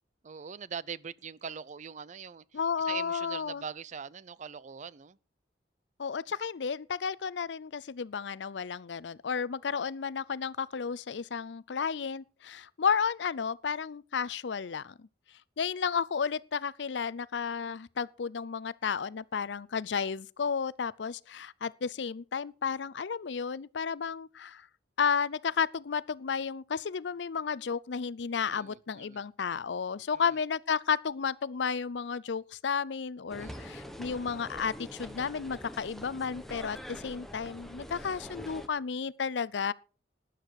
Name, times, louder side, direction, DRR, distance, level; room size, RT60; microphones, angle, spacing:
voice 1, 0.2-2.6 2.9-5.2 28.5-29.2 30.1-30.2 33.4-33.8, right 7 dB, 45° right, 0.5 m, -42 dB
voice 2, 2.5-3.6 6.0-12.2 12.8-14.8 15.6-24.5 25.0-33.5 34.0-34.7 35.0-36.8 37.0-39.7, left 6 dB, 80° left, 0.5 m, -32 dB
sound 1, 33.3-38.7, equal, ahead, 1.2 m, -44 dB
12.5 x 10.0 x 4.8 m
head